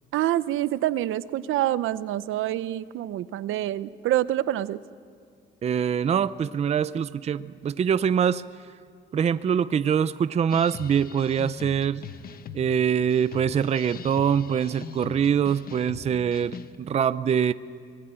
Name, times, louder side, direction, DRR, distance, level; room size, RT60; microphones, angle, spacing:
voice 1, 0.1-4.8, right 13 dB, 75° right, 15 dB, 0.7 m, -26 dB
voice 2, 5.6-8.4 9.1-12.0 12.5-17.5, right 8 dB, 30° right, 14 dB, 0.5 m, -24 dB
sound 1, 10.5-16.8, left 7 dB, 45° left, 1.1 m, -42 dB
24.5 x 21.0 x 8.9 m, 2.3 s
cardioid pair, 145°, 21 cm